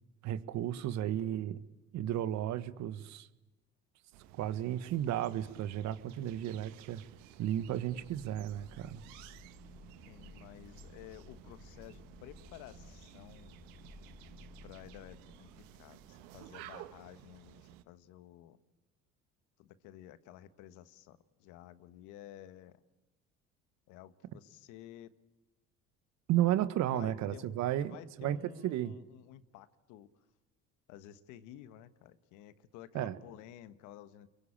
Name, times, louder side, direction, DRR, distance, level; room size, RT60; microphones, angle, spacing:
voice 1, 0.2-1.6 1.9-3.3 4.4-7.0 7.4-9.0 26.3-28.4 28.6-28.9 32.9-33.1, right 12 dB, 65° right, 1.5 m, -33 dB
sound 1, 4.1-17.8, right 12 dB, 80° right, 1.5 m, -55 dB
sound 2, 7.2-16.5, left 3 dB, 40° left, 2.8 m, -56 dB
voice 2, 10.0-13.6 14.6-18.6 19.6-22.8 23.9-25.2 26.9-30.3 30.9-34.3, left 12 dB, 75° left, 1.5 m, -53 dB
28.5 x 23.0 x 8.8 m
supercardioid pair, 85°, 30 cm